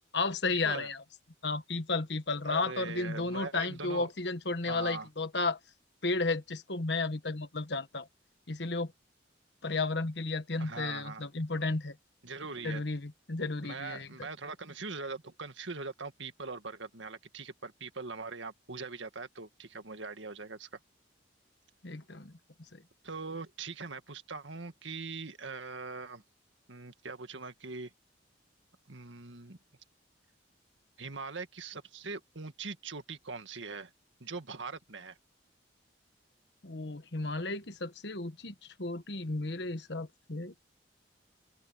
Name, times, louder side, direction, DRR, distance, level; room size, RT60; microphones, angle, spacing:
voice 1, 0.1-1.0 1.4-5.6 6.0-8.1 8.5-8.9 9.6-11.9 12.6-14.1 21.8-22.3 22.7-22.8 36.6-40.5, left 3 dB, 65° left, 1.4 m, -33 dB
voice 2, 2.5-4.1 4.7-5.1 10.6-11.3 12.2-12.8 13.6-20.7 23.0-26.2 26.7-27.9 28.9-29.6 31.0-33.9 34.2-35.2, right 4 dB, 80° right, 1.8 m, -41 dB
open air
head